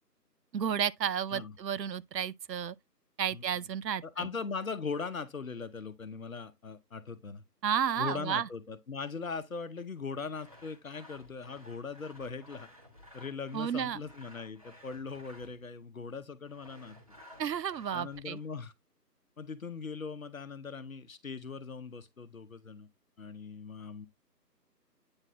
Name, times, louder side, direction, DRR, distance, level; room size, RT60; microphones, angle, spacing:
voice 1, 0.5-2.8 3.2-4.3 7.6-8.5 13.5-14.0 17.4-18.4, right 8 dB, 80° right, 0.6 m, -32 dB
voice 2, 4.0-7.4 8.0-12.7 13.1-16.9 17.9-18.7 19.4-22.9 23.2-24.1, left 5 dB, 55° left, 0.9 m, -40 dB
Sawing, 10.3-15.7 16.5-18.5, left 1 dB, 20° right, 0.9 m, -56 dB
8.8 x 3.9 x 2.7 m
figure-of-eight pair, 160°, 49 cm